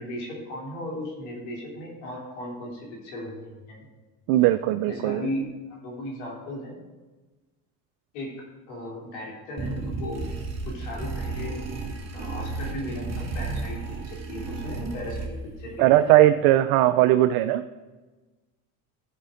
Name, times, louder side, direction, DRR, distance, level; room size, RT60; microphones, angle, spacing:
voice 1, 0.0-3.9 4.9-6.7 8.1-10.2 10.6-11.6 12.1-16.1, left 1 dB, 80° left, -1 dB, 3.4 m, -36 dB
voice 2, 4.3-5.2 15.8-17.6, right 14 dB, 80° right, 11 dB, 0.5 m, -19 dB
sound 1, 9.6-15.6, right 3 dB, 40° right, 2.6 m, -33 dB
13.5 x 5.2 x 5.1 m, 1.2 s
supercardioid pair, 80°, 41 cm